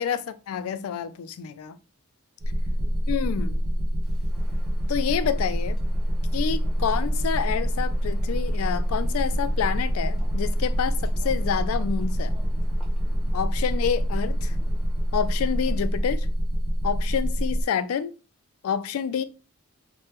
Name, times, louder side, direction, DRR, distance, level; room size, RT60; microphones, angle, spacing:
voice 1, 0.0-1.8 3.1-3.6 4.9-5.8 6.3-12.3 13.3-14.5 15.1-16.3 16.8-18.1 18.6-19.2, left 7 dB, 75° left, 0.3 m, -28 dB
sound 1, 2.4-17.6, equal, 40° right, 0.5 m, -26 dB
Wind, 4.0-15.8, equal, ahead, 0.8 m, -50 dB
3.3 x 2.1 x 3.0 m
head